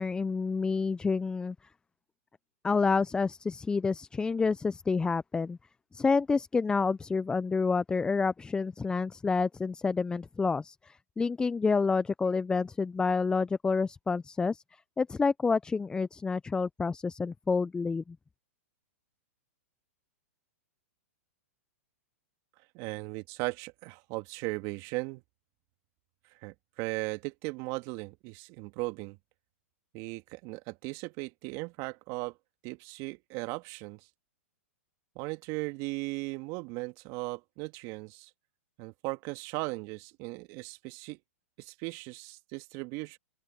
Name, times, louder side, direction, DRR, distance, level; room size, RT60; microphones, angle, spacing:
voice 1, 0.0-1.6 2.6-5.6 5.9-18.2, left 4 dB, 10° left, 0.6 m, -29 dB
voice 2, 22.7-25.2 26.4-29.2 29.9-32.4 32.6-34.1 35.2-38.3 38.8-41.2 41.6-43.2, right 25 dB, 45° right, 2.1 m, -37 dB
open air
hypercardioid pair, 115°, 8 cm